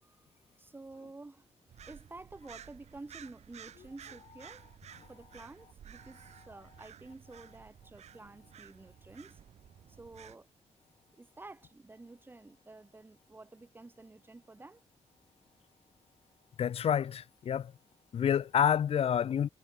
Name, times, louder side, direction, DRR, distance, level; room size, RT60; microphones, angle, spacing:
voice 1, 0.6-1.5 1.9-4.8 5.1-9.4 10.0-10.5 11.1-14.8, right 2 dB, 20° right, 7.3 m, -51 dB
sound 1, 1.7-10.4, right 9 dB, 75° right, 5.1 m, -54 dB
voice 2, 16.6-17.7 18.1-19.5, left 8 dB, 60° left, 0.9 m, -28 dB
wide cardioid pair, 140°, 12 cm